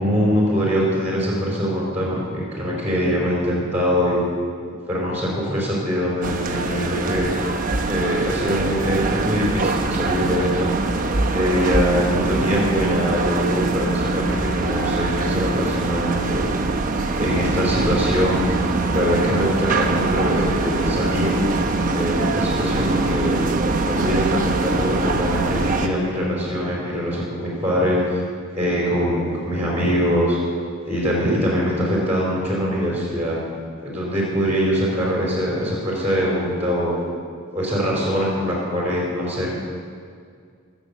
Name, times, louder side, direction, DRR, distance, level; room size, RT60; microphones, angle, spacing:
voice 1, 0.0-4.2 4.9-7.3 7.8-10.7 11.3-16.4 17.2-18.4 18.9-21.4 21.9-28.2 28.6-30.4 30.9-33.4 33.8-36.9 37.5-39.5, equal, 10° right, -5 dB, 4.5 m, -23 dB
sound 1, 6.2-25.9, right 3 dB, 40° right, 1.0 m, -23 dB
24.0 x 8.1 x 7.2 m, 2.2 s
head